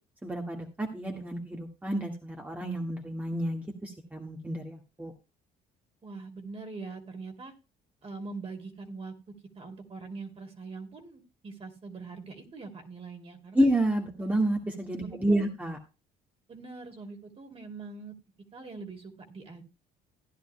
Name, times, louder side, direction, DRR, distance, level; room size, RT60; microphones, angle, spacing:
voice 1, 0.2-5.1 13.5-15.8, right 1 dB, 10° right, 1 dB, 1.7 m, -29 dB
voice 2, 6.0-7.5 8.0-13.7 15.0-15.5 16.5-18.1 18.5-19.6, right 4 dB, 35° right, 4 dB, 2.7 m, -43 dB
16.0 x 10.5 x 2.2 m, 0.29 s
cardioid pair, 110°, 17 cm